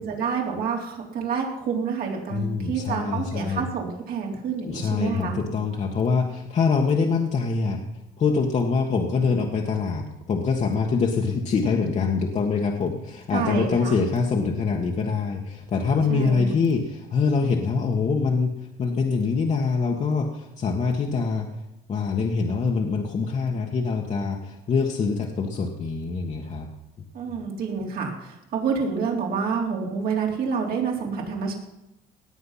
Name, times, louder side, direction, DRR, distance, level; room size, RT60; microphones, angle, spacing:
voice 1, 0.0-5.4 13.3-14.0 16.1-16.5 27.1-31.5, right 6 dB, 65° right, 0 dB, 3.6 m, -28 dB
voice 2, 2.3-3.6 4.6-7.8 8.2-21.5 21.9-26.7, left 5 dB, 45° left, 0 dB, 1.6 m, -24 dB
18.5 x 8.0 x 5.8 m, 0.90 s
cardioid pair, 110°, 17 cm